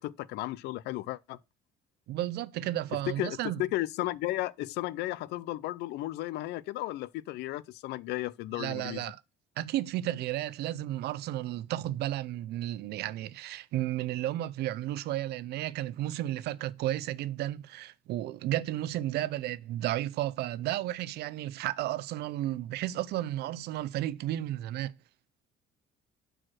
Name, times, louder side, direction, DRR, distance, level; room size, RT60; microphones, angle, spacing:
voice 1, 0.0-1.4 3.1-9.1, left 16 dB, 80° left, 0.5 m, -34 dB
voice 2, 2.1-3.6 8.5-9.2 9.6-24.9, right 14 dB, 75° right, 0.5 m, -33 dB
6.4 x 4.5 x 6.1 m
cardioid pair, 110°, 17 cm